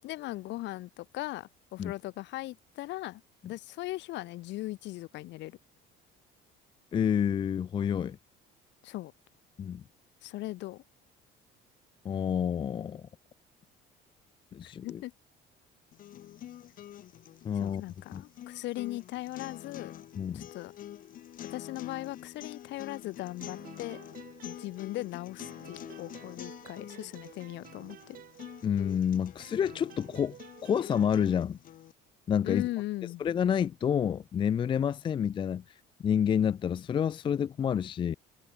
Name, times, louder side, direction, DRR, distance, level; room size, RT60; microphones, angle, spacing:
voice 1, 0.0-5.6 8.8-9.1 10.2-10.8 14.8-15.1 17.6-19.9 20.3-20.7 21.5-24.0 24.4-28.2 32.4-33.2, left 17 dB, 60° left, 6.0 m, -38 dB
voice 2, 6.9-8.2 9.6-9.8 12.0-13.0 14.5-15.0 17.4-17.8 18.1-18.2 20.2-20.5 28.6-30.4 30.6-31.6 32.3-32.6 33.2-35.6 36.0-38.2, left 8 dB, 25° left, 0.5 m, -28 dB
sound 1, 15.9-31.9, left 11 dB, 45° left, 6.3 m, -47 dB
sound 2, 23.4-25.1 25.4-29.0 29.4-31.4, right 12 dB, 45° right, 5.8 m, -52 dB
cardioid pair, 175°, 20 cm